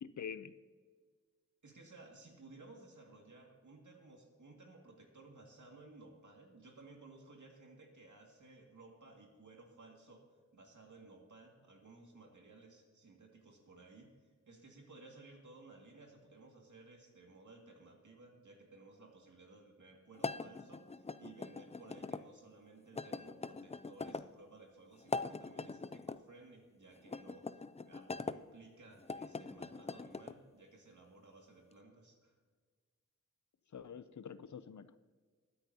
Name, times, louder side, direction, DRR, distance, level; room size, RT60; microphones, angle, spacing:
voice 1, 0.0-0.5 33.7-35.0, left 7 dB, 75° left, 14 dB, 0.6 m, -46 dB
voice 2, 1.6-10.3 10.5-14.1 14.4-32.3, right 3 dB, 85° right, 0 dB, 2.2 m, -58 dB
sound 1, 20.2-22.2 23.0-24.3 25.0-26.2 27.0-28.4 29.0-30.4, left 4 dB, 25° left, 0.4 m, -42 dB
21.5 x 9.5 x 2.8 m, 1.5 s
wide cardioid pair, 75°, 29 cm